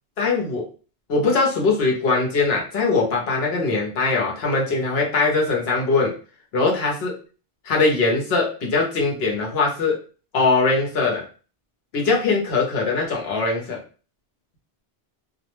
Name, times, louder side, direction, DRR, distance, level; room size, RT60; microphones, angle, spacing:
voice 1, 0.2-0.7 1.1-6.1 6.5-7.2 7.6-10.0 10.3-11.2 11.9-13.8, left 3 dB, 75° left, -1 dB, 0.9 m, -21 dB
2.3 x 2.0 x 2.9 m, 0.38 s
omnidirectional pair, 1.1 m